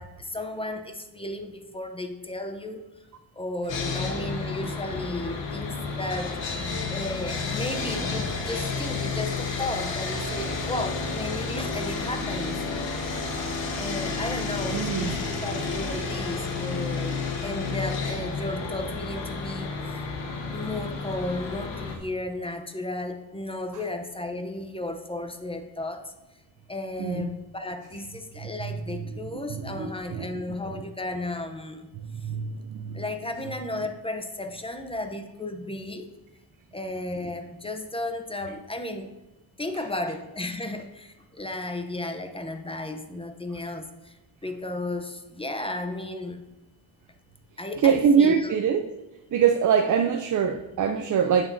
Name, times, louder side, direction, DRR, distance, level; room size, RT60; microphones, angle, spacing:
voice 1, 0.0-2.8 3.4-6.4 6.9-12.6 13.7-20.0 20.5-26.1 26.7-31.9 32.9-36.1 36.7-39.1 39.6-44.2 44.4-46.4 47.6-48.5, left 2 dB, 10° left, 7 dB, 0.7 m, -34 dB
Sawing, 3.7-22.0, left 4 dB, 65° left, 1.4 m, -31 dB
voice 2, 14.7-15.2 27.0-27.3 28.4-28.5 29.5-30.6 32.0-33.0 47.8-48.8 49.3-51.5, right 7 dB, 40° right, 6 dB, 0.5 m, -23 dB
8.6 x 7.2 x 2.7 m, 1.0 s
cardioid pair, 100°, 47 cm